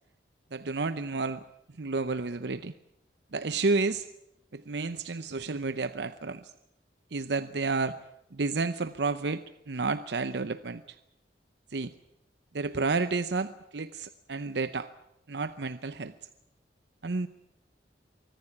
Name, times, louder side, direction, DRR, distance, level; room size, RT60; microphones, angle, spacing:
voice 1, 0.5-1.4 1.8-2.7 3.3-4.1 4.5-6.5 7.1-8.0 8.3-11.0 11.7-11.9 12.5-14.9 15.3-16.1 17.0-17.3, right 3 dB, 70° right, 12 dB, 0.8 m, -31 dB
24.0 x 14.5 x 9.9 m, 0.83 s
head